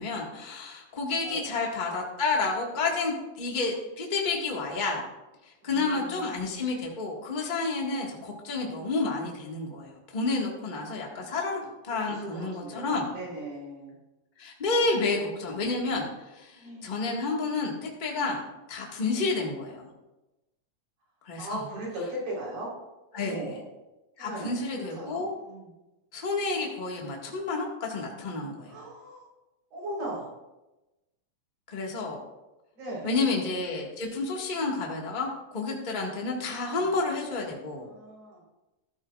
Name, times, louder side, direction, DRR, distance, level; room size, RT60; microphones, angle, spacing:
voice 1, 0.0-5.0 5.6-13.1 14.4-18.4 18.7-19.9 21.2-21.6 23.1-23.5 24.2-25.3 26.1-28.7 31.7-32.2 33.0-37.9, left 3 dB, 25° left, -2 dB, 0.9 m, -30 dB
voice 2, 1.2-1.6 5.6-6.4 11.9-14.0 14.9-15.2 16.5-16.9 19.1-19.3 21.4-22.7 23.1-23.6 24.2-25.7 28.6-29.2 29.7-30.3 32.8-33.2 37.7-38.4, right 1 dB, 75° right, -4 dB, 5.7 m, -38 dB
14.5 x 13.0 x 2.5 m, 1.0 s
omnidirectional pair, 4.0 m